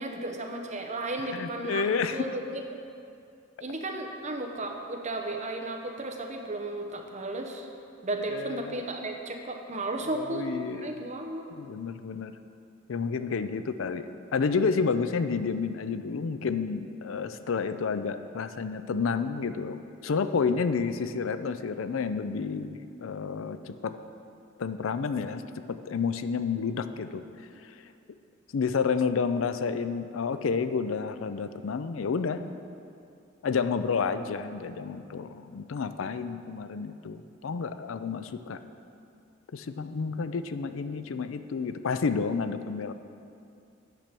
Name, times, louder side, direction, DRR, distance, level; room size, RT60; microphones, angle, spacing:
voice 1, 0.0-2.6 3.6-7.7 8.0-11.5, right 2 dB, 35° right, 3 dB, 0.9 m, -34 dB
voice 2, 1.3-2.2 8.3-8.8 10.1-11.0 11.5-12.3 12.9-24.0 24.6-25.4 25.7-27.2 28.5-32.4 33.4-38.6 39.5-42.9, left 5 dB, 85° left, 11 dB, 0.5 m, -30 dB
9.1 x 5.9 x 6.8 m, 2.6 s
head